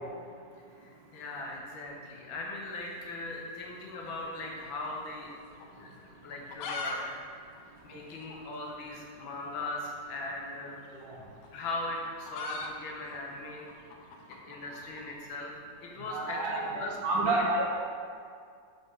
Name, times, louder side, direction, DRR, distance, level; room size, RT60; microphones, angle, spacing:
voice 1, 0.8-5.3 5.7-5.9 6.2-7.6 7.8-10.8 11.5-13.6 14.5-15.5 15.8-17.4, left 2 dB, 85° left, -1 dB, 1.8 m, -39 dB
sound 1, 4.0-5.4 5.6-5.7 6.2-7.0 7.2-7.3 7.6-7.7 8.2-8.4 9.5-9.7 10.8-15.1, left 3 dB, 70° left, 1.2 m, -40 dB
voice 2, 16.1-16.7 17.0-17.7, right 2 dB, 80° right, -2 dB, 1.8 m, -28 dB
6.1 x 5.3 x 3.7 m, 2.2 s
omnidirectional pair, 2.1 m